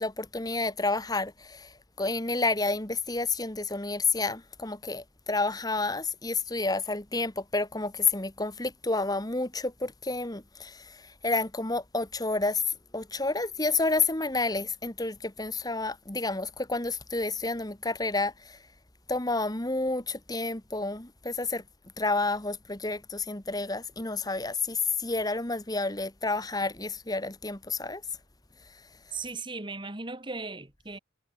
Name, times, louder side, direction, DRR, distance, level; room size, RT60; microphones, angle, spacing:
voice 1, 0.0-1.7 2.0-11.0 11.2-12.6 12.9-18.6 19.1-21.6 22.0-28.0, left 3 dB, 20° left, 1.7 m, -30 dB
voice 2, 29.1-31.0, right 3 dB, 25° right, 2.1 m, -37 dB
head